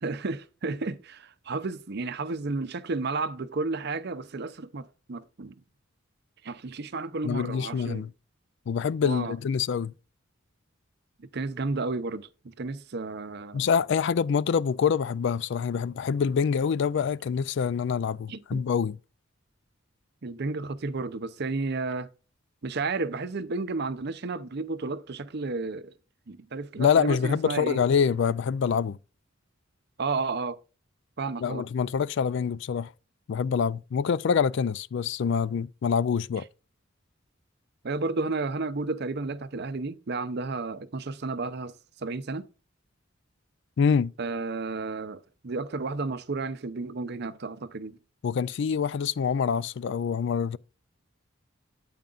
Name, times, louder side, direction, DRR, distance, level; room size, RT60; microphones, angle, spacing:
voice 1, 0.0-5.6 6.4-8.0 9.0-9.3 11.3-13.7 18.3-18.6 20.2-22.1 22.6-25.9 26.3-27.8 30.0-30.6 31.2-31.6 37.8-42.5 44.2-48.0, right 3 dB, 55° right, 0.7 m, -32 dB
voice 2, 7.2-8.1 8.7-9.9 13.5-18.9 26.8-29.0 31.4-32.9 33.3-36.5 43.8-44.1 48.2-50.6, left 6 dB, 60° left, 0.3 m, -26 dB
9.1 x 8.7 x 2.5 m
head